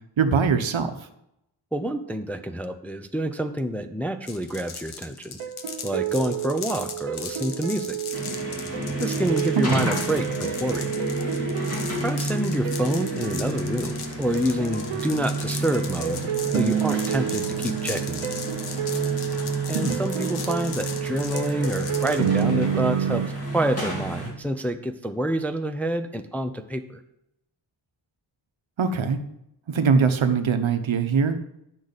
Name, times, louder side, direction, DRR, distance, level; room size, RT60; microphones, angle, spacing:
voice 1, 0.2-0.9 9.6-9.9 19.7-20.0 28.8-29.2 29.7-31.4, right 5 dB, 65° right, 9 dB, 0.9 m, -22 dB
voice 2, 1.7-5.4 5.8-8.0 9.0-10.9 12.0-16.2 16.5-18.3 19.7-23.2 23.5-27.0, right 1 dB, 5° left, 7 dB, 0.4 m, -27 dB
sound 1, 4.2-22.4, left 6 dB, 80° left, 1.1 m, -38 dB
sound 2, 5.4-23.3, right 9 dB, 90° right, 0.7 m, -30 dB
sound 3, 8.1-24.3, right 2 dB, 30° left, 2.8 m, -30 dB
10.5 x 6.3 x 4.1 m, 0.80 s
wide cardioid pair, 110°, 50 cm